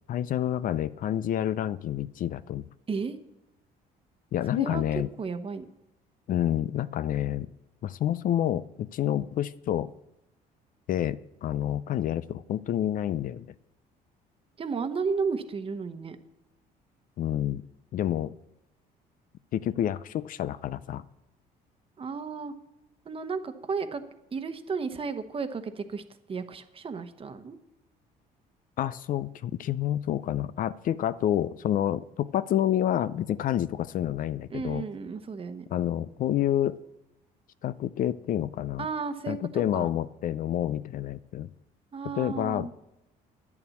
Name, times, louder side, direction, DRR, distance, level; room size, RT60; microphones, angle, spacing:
voice 1, 0.1-2.7 4.3-5.1 6.3-7.5 7.8-9.9 10.9-13.5 17.2-17.6 17.9-18.3 19.5-21.0 28.8-34.9 35.7-36.8 37.6-38.8 39.3-41.5 42.2-42.7, left 11 dB, 55° left, 16 dB, 0.5 m, -28 dB
voice 2, 4.5-4.8 5.2-5.6 14.6-16.2 22.0-22.5 23.0-24.0 24.3-26.0 26.3-27.6 34.5-35.6 38.8-39.9 41.9-42.7, right 5 dB, 35° right, 9 dB, 1.1 m, -33 dB
10.5 x 7.1 x 8.4 m, 0.90 s
cardioid pair, 110°, 17 cm